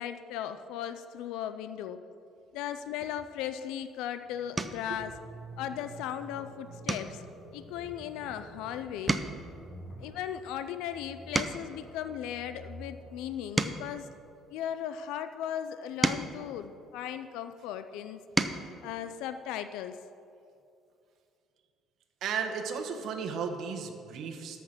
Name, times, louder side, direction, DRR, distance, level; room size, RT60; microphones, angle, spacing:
voice 1, 0.0-2.0 2.5-5.2 5.6-7.2 7.5-9.2 10.0-14.1 14.5-18.2 18.8-20.0, left 10 dB, 90° left, 10 dB, 0.4 m, -37 dB
sound 1, 3.7-4.0 4.5-4.9 5.4-5.8 6.1-6.3 6.8-8.7 8.9-11.9 12.5-15.0 15.6-17.5 18.0-18.7 20.1-20.2 20.5-20.7, right 2 dB, 15° right, 0.6 m, -35 dB
sound 2, 4.3-14.1, right 1 dB, 40° left, 2.2 m, -49 dB
voice 2, 22.2-24.6, right 6 dB, 65° right, 4 dB, 1.2 m, -35 dB
13.0 x 6.0 x 6.6 m, 2.5 s
cardioid pair, 125°, 0 cm